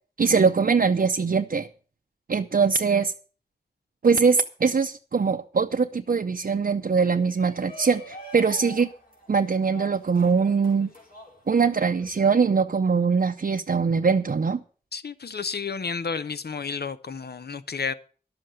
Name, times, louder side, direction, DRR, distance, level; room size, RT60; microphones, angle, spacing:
voice 1, 0.2-1.7 2.3-3.1 4.0-8.9 9.3-10.9 11.5-14.6, right 5 dB, 65° right, 0.6 m, -22 dB
Shout, 7.1-12.2, right 1 dB, 65° left, 4.1 m, -44 dB
voice 2, 14.9-17.9, left 5 dB, 90° left, 0.7 m, -31 dB
11.5 x 7.8 x 7.5 m
wide cardioid pair, 60°, 16 cm